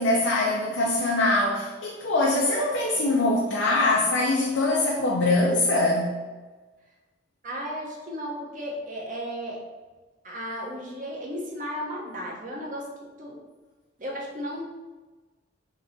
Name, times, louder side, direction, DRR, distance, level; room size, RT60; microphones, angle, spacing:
voice 1, 0.0-6.2, left 2 dB, 80° left, -2 dB, 0.6 m, -23 dB
voice 2, 7.4-9.6 10.2-12.9 13.2-13.4 14.0-14.6, equal, 45° right, -3 dB, 0.9 m, -34 dB
3.7 x 2.8 x 4.1 m, 1.3 s
head